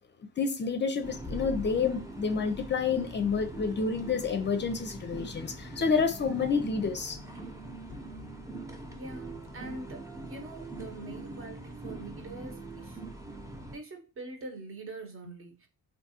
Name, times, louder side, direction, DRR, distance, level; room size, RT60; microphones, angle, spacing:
voice 1, 0.4-7.2, left 5 dB, 35° left, 0.5 m, -29 dB
sound 1, 1.0-13.8, right 2 dB, 10° right, 0.8 m, -42 dB
voice 2, 8.9-13.0 13.7-15.7, right 2 dB, 45° right, 1.1 m, -44 dB
3.3 x 2.6 x 2.8 m
cardioid pair, 90°, 30 cm